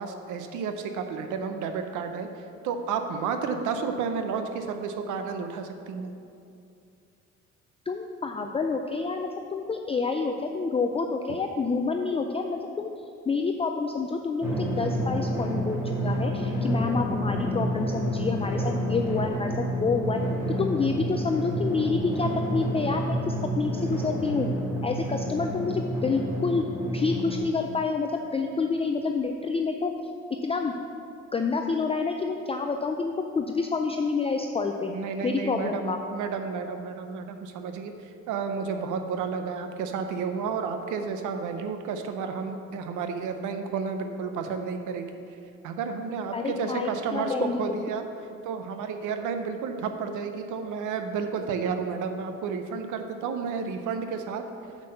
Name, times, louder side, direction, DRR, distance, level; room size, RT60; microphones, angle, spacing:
voice 1, 0.0-2.3 2.6-6.1 34.8-37.9 38.3-45.1 45.6-48.0 48.4-54.4, right 5 dB, 85° right, 7 dB, 0.6 m, -31 dB
voice 2, 7.9-12.9 13.3-20.2 20.6-24.5 24.8-26.7 26.9-29.9 30.4-30.7 31.3-34.9 35.2-36.0 46.3-47.9, left 4 dB, 20° left, 4 dB, 0.4 m, -28 dB
Drum, 14.4-27.4, equal, 10° right, 1.8 m, -29 dB
6.1 x 5.6 x 6.4 m, 2.5 s
cardioid pair, 90°, 30 cm